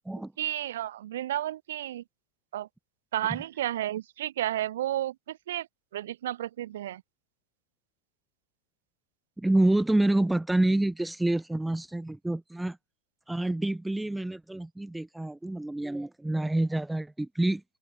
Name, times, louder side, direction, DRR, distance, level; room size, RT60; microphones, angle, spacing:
voice 1, 0.4-2.0 2.5-2.7 3.1-7.0, right 13 dB, 60° right, 3.3 m, -32 dB
voice 2, 9.4-12.8 13.3-17.6, right 1 dB, 5° right, 0.6 m, -27 dB
open air
figure-of-eight pair, 90°, 0 cm